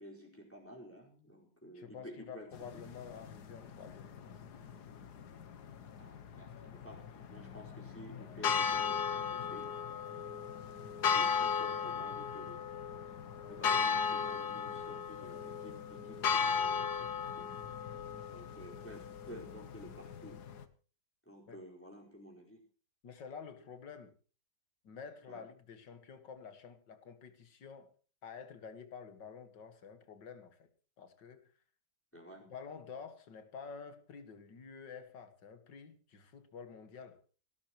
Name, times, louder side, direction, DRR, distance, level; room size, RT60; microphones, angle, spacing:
voice 1, 0.0-2.5 2.7-2.8 6.0-9.6 11.1-12.7 13.5-17.4 18.3-20.4 21.3-22.6 25.3-25.4 32.1-32.4, equal, 5° left, 4.6 m, -52 dB
voice 2, 1.7-4.9 21.5-21.6 23.0-24.1 24.8-27.9 28.2-30.7 31.0-31.5 32.4-37.2, left 6 dB, 90° left, 2.4 m, -50 dB
sound 1, 2.5-20.6, left 6 dB, 65° left, 1.7 m, -37 dB
29.5 x 12.5 x 3.0 m
omnidirectional pair, 1.9 m